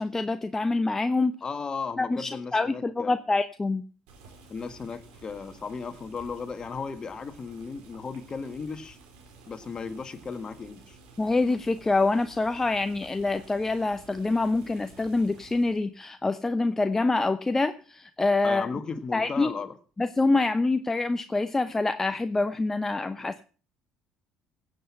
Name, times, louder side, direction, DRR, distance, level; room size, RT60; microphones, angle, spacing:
voice 1, 0.0-1.4 2.0-3.8 11.2-18.7 19.1-19.5 20.0-23.5, left 3 dB, 20° left, 10 dB, 0.8 m, -26 dB
voice 2, 1.4-3.2 4.5-9.0 9.5-11.0 18.4-19.7 23.2-23.3, left 5 dB, 35° left, 10 dB, 1.7 m, -36 dB
Boiling, 4.1-15.8, right 3 dB, 70° right, 4.1 m, -52 dB
16.5 x 8.1 x 5.7 m, 0.39 s
hypercardioid pair, 65°, 2 cm